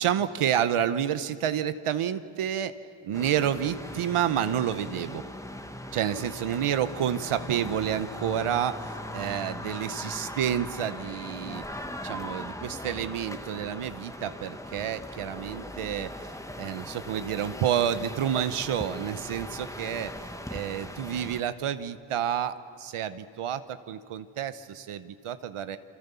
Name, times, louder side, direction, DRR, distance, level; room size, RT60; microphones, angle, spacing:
voice 1, 0.0-2.7 3.0-5.2 5.9-11.6 12.0-16.1 16.6-20.1 20.5-25.8, right 9 dB, 85° right, 12 dB, 1.0 m, -29 dB
sound 1, 3.1-21.4, left 1 dB, 5° left, 1.5 m, -39 dB
28.5 x 23.5 x 6.9 m, 2.3 s
cardioid pair, 70°, 50 cm